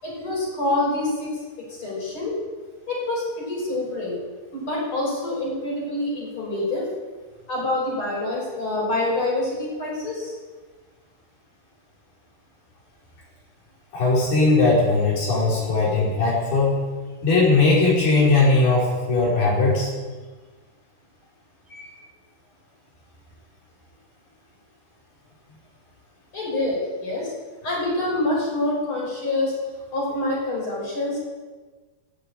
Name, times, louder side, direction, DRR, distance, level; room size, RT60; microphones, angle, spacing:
voice 1, 0.0-2.4 2.9-4.2 4.5-6.8 7.5-10.3 21.7-21.9 26.3-27.3 27.6-29.5 29.9-31.3, left 2 dB, 30° left, -4 dB, 6.8 m, -26 dB
voice 2, 13.9-16.8 17.2-19.9, left 3 dB, 65° left, -5 dB, 7.1 m, -19 dB
17.5 x 8.9 x 9.2 m, 1.4 s
omnidirectional pair, 4.8 m